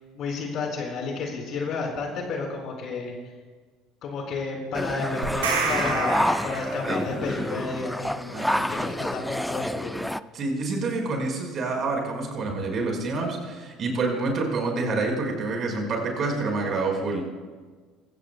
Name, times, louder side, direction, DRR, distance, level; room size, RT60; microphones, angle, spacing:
voice 1, 0.1-3.1 4.0-10.0, left 4 dB, 50° left, 1 dB, 4.7 m, -31 dB
sound 1, 4.7-10.2, equal, ahead, 0.4 m, -28 dB
sound 2, 5.2-7.2, right 4 dB, 75° right, 3.3 m, -29 dB
voice 2, 8.3-8.7 10.3-17.2, right 3 dB, 45° right, 1 dB, 4.9 m, -27 dB
24.5 x 16.0 x 2.3 m, 1.4 s
figure-of-eight pair, 65°, 0 cm